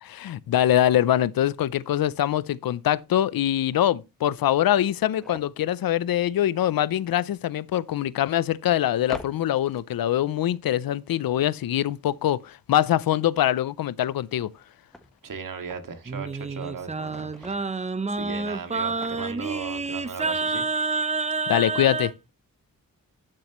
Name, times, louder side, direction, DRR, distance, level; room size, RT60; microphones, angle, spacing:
voice 1, 0.0-14.5 21.5-22.1, left 12 dB, 85° left, 0.6 m, -23 dB
sound 1, 4.8-5.6 7.7-7.8 9.0-10.2 14.1-15.9 16.3-17.7 18.3-19.6 20.0-20.1 20.3-20.5, equal, ahead, 1.2 m, -46 dB
voice 2, 15.2-17.6 18.1-20.6, right 5 dB, 70° right, 2.0 m, -37 dB
Singing, 16.1-22.1, right 4 dB, 20° right, 0.6 m, -28 dB
12.0 x 7.6 x 3.0 m
wide cardioid pair, 90°, 34 cm